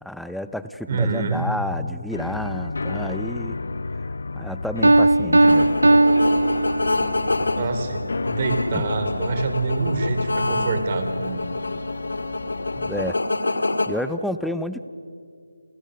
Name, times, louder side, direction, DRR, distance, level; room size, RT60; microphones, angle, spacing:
voice 1, 0.0-3.6 4.3-5.7 8.7-8.9 12.8-13.2 13.9-14.9, left 1 dB, ahead, 11 dB, 0.7 m, -30 dB
voice 2, 0.9-1.4 7.6-11.4, right 3 dB, 35° right, 6 dB, 4.0 m, -25 dB
sound 1, 2.1-13.1, left 3 dB, 60° left, 1.0 m, -32 dB
Piano, 4.8-7.3, right 2 dB, 85° right, 0.9 m, -17 dB
sound 2, 5.5-13.9, left 2 dB, 75° left, 2.8 m, -27 dB
29.5 x 29.0 x 6.6 m, 2.3 s
figure-of-eight pair, 165°, 0 cm